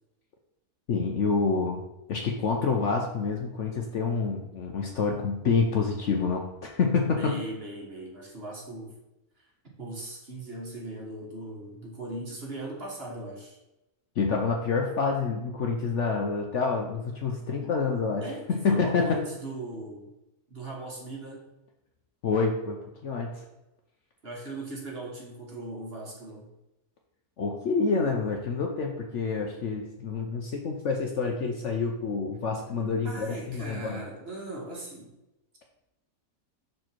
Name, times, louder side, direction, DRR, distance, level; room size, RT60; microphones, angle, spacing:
voice 1, 0.9-1.8 2.1-7.4 14.2-18.2 18.6-19.2 22.2-23.4 27.4-34.0, left 4 dB, 60° left, 2 dB, 0.9 m, -27 dB
voice 2, 7.2-8.9 9.4-9.5 9.8-13.6 18.2-20.1 20.5-21.5 24.2-26.5 33.0-35.1, right 2 dB, 40° right, -2 dB, 1.7 m, -39 dB
6.3 x 4.5 x 4.5 m, 0.95 s
omnidirectional pair, 1.7 m